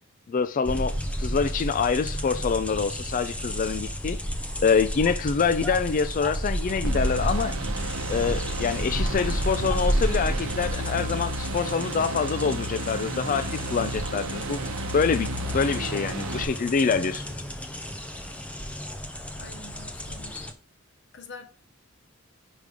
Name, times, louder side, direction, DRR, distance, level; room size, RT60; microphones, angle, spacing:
voice 1, 0.3-4.2 4.6-7.5 8.1-14.6 14.9-17.2, left 5 dB, 40° left, 0.4 m, -26 dB
sound 1, 0.7-20.5, equal, 5° left, 0.8 m, -32 dB
sound 2, 6.8-16.4, right 1 dB, 80° right, 0.8 m, -32 dB
sound 3, 9.0-18.7, equal, 10° right, 1.4 m, -49 dB
voice 2, 19.4-20.5 21.1-21.5, left 3 dB, 60° left, 1.3 m, -44 dB
5.2 x 5.0 x 4.9 m
head